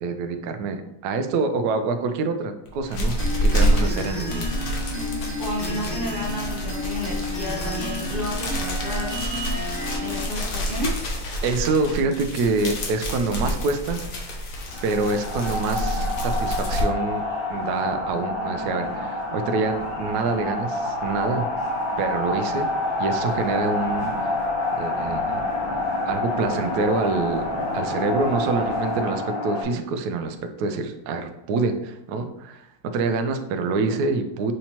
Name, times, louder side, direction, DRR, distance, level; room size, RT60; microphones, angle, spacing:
voice 1, 0.0-4.5 11.4-14.0 14.3-14.4 14.8-17.2 17.5-21.5 22.0-22.7 23.0-24.4 24.8-25.4 26.1-27.4 27.7-34.5, right 3 dB, 75° right, 7 dB, 0.9 m, -26 dB
sound 1, 2.6-16.8, equal, 55° left, 1.1 m, -28 dB
sound 2, 3.2-10.2, left 2 dB, 25° left, 1.3 m, -32 dB
voice 2, 4.9-9.3 10.0-11.1, equal, 55° right, -5 dB, 0.6 m, -32 dB
sound 3, 14.7-29.6, left 2 dB, 75° left, 1.8 m, -27 dB
6.3 x 2.9 x 2.8 m, 0.87 s
omnidirectional pair, 2.1 m